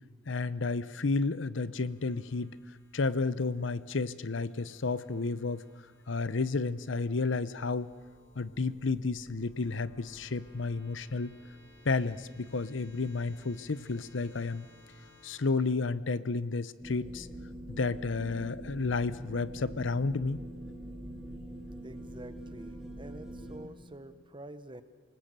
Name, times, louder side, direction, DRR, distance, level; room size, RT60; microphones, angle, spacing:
voice 1, 0.3-2.6 2.9-5.6 6.1-7.9 8.4-11.3 11.8-14.7 15.2-17.3 17.7-20.4, left 3 dB, 65° left, 16 dB, 0.8 m, -31 dB
sound 1, 1.8-15.4, left 1 dB, 30° left, 7.5 m, -60 dB
sound 2, 16.8-23.7, right 1 dB, ahead, 2.7 m, -44 dB
voice 2, 21.8-24.8, right 1 dB, 25° right, 12 dB, 1.1 m, -47 dB
28.0 x 19.0 x 7.6 m, 1.4 s
head